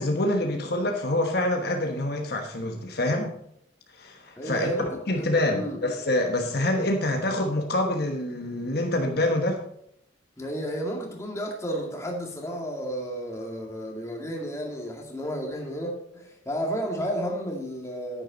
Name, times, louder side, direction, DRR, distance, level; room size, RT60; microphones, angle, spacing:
voice 1, 0.0-3.3 4.0-4.7 5.1-9.6, left 1 dB, 55° left, 3 dB, 1.2 m, -26 dB
voice 2, 4.4-4.9 5.2-5.8 10.4-18.2, equal, 15° left, 0 dB, 2.1 m, -32 dB
10.0 x 9.6 x 4.0 m, 0.72 s
head